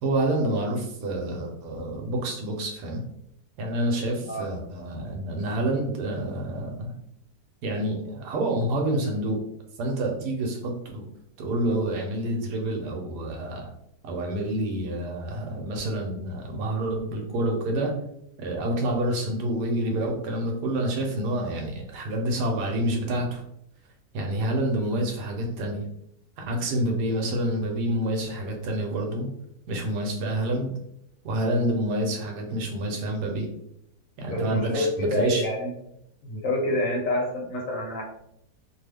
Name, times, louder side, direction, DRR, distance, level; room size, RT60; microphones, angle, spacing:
voice 1, 0.0-3.0 3.6-6.9 7.6-9.4 9.8-11.1 11.4-13.7 14.0-17.9 18.4-23.4 24.1-25.8 26.5-29.3 29.7-30.7 31.2-33.5 34.2-35.5, right 1 dB, 85° right, 1 dB, 1.3 m, -28 dB
voice 2, 34.3-35.7 36.2-38.0, left 1 dB, 60° left, -1 dB, 1.1 m, -27 dB
3.0 x 2.2 x 3.3 m, 0.76 s
omnidirectional pair, 1.7 m